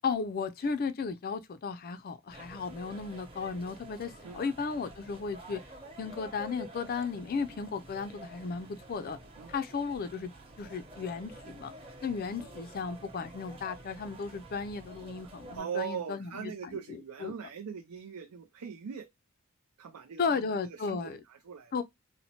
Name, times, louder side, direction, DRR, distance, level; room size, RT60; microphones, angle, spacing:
voice 1, 0.0-5.6 6.0-9.2 9.5-10.3 10.6-11.7 12.0-17.3 20.2-21.2 21.7-21.8, left 5 dB, 40° left, 0.4 m, -35 dB
sound 1, 2.3-15.6, right 1 dB, 25° right, 0.8 m, -49 dB
voice 2, 15.2-19.1 19.8-21.8, right 7 dB, 90° right, 0.5 m, -41 dB
4.1 x 2.1 x 2.8 m
head